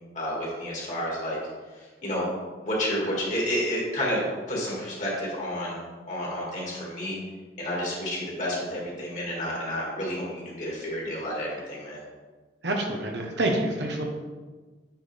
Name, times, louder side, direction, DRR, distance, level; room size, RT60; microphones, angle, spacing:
voice 1, 0.1-1.4 1.8-2.3 2.6-5.8 6.1-7.2 7.6-12.0, equal, 45° left, -5 dB, 2.2 m, -30 dB
voice 2, 12.6-14.0, right 1 dB, 75° right, 1 dB, 1.1 m, -27 dB
8.9 x 4.3 x 3.5 m, 1.3 s
head